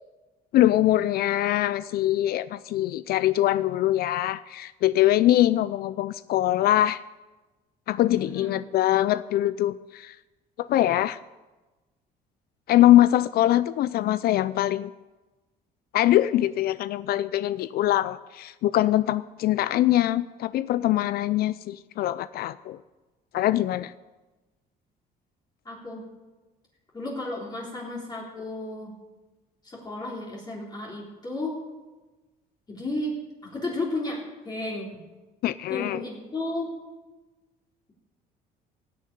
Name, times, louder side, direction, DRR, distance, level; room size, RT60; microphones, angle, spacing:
voice 1, 0.5-7.0 7.9-10.2 10.6-11.2 12.7-14.9 15.9-22.8 23.3-23.9 35.4-36.0, left 14 dB, 65° left, 16 dB, 0.4 m, -23 dB
voice 2, 8.2-8.6 25.7-26.0 26.9-28.9 29.6-31.5 32.7-33.2 33.4-34.2 34.4-35.0 35.7-36.7, left 2 dB, 25° left, -4 dB, 3.7 m, -33 dB
16.5 x 6.6 x 9.3 m, 1.2 s
cardioid pair, 110°, 17 cm